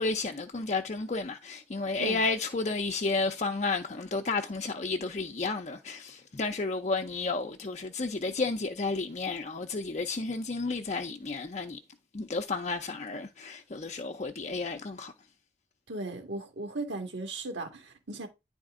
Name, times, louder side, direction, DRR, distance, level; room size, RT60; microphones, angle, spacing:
voice 1, 0.0-11.8 12.1-15.1, left 3 dB, 40° left, 0.5 m, -32 dB
voice 2, 15.9-18.3, right 2 dB, 75° right, 1.9 m, -37 dB
9.8 x 4.2 x 3.6 m
head